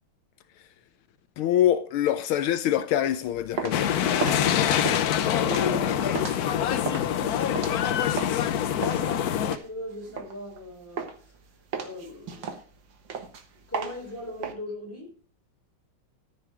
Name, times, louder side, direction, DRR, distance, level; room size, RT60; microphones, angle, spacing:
voice 1, 1.4-3.9, left 11 dB, 80° left, 1.5 m, -24 dB
sound 1, 3.2-8.5 8.8-10.6 11.0-11.4 11.7-14.5, right 6 dB, 60° right, 2.0 m, -35 dB
sound 2, 3.7-9.6, left 9 dB, 65° left, 0.9 m, -25 dB
voice 2, 5.4-11.3 11.8-12.4 13.7-15.1, left 2 dB, 5° left, 4.1 m, -39 dB
13.5 x 6.8 x 4.8 m
omnidirectional pair, 2.3 m